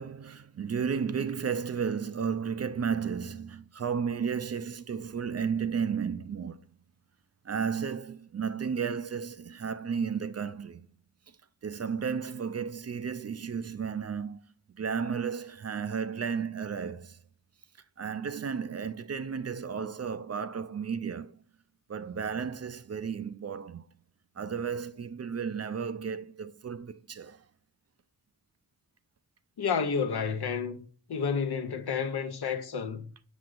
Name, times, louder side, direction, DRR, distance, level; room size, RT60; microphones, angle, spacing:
voice 1, 0.0-6.6 7.4-10.9 11.3-11.4 11.6-14.4 14.7-17.2 18.0-21.4 21.9-23.9 24.4-27.5, right 6 dB, 40° right, 0.4 m, -33 dB
voice 2, 29.6-33.1, left 6 dB, 75° left, 0.8 m, -31 dB
6.4 x 6.1 x 2.5 m
cardioid pair, 60°, 39 cm